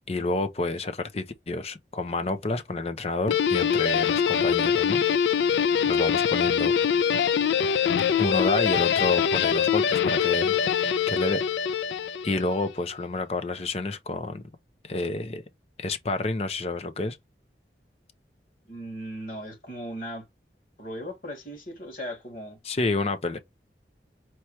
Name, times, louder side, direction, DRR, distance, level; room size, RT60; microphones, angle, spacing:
voice 1, 0.1-5.0 5.9-6.7 8.2-10.5 11.1-11.4 12.2-14.4 14.8-15.4 15.8-17.2 22.6-23.4, left 2 dB, 35° left, 0.6 m, -29 dB
Guitar, 3.3-12.6, left 7 dB, 80° left, 0.3 m, -23 dB
voice 2, 18.7-20.3 20.8-22.6, equal, 50° left, 2.5 m, -37 dB
4.6 x 2.9 x 3.1 m
head